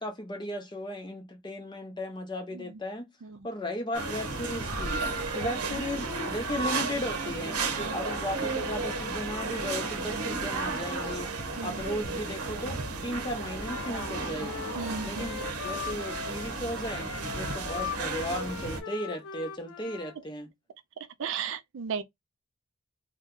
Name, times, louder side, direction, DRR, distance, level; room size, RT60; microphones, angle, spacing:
voice 1, 0.0-3.1 3.4-5.0 5.3-11.3 11.6-14.7 15.0-20.5, left 1 dB, 20° left, 0.6 m, -36 dB
sound 1, 3.9-18.8, right 3 dB, 90° right, 0.8 m, -33 dB
Wind instrument woodwind instrument, 13.5-20.2, left 7 dB, 75° left, 0.5 m, -40 dB
voice 2, 14.8-15.3 21.2-22.0, right 6 dB, 60° right, 0.4 m, -36 dB
2.7 x 2.1 x 3.6 m
head